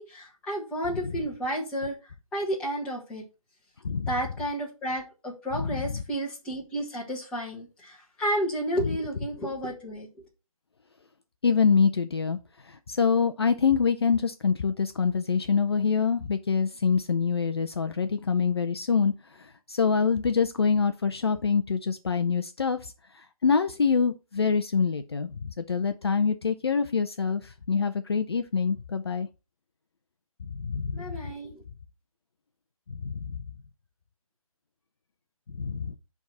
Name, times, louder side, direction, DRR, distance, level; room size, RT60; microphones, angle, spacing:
voice 1, 0.0-1.9 2.3-3.2 4.1-10.1 30.9-31.6, right 1 dB, 5° left, 1.4 m, -31 dB
voice 2, 11.4-12.4 12.7-19.1 19.7-29.3 30.6-31.0 32.9-33.4 35.6-36.0, left 5 dB, 45° left, 0.6 m, -25 dB
10.5 x 3.6 x 5.5 m
figure-of-eight pair, 155°, 19 cm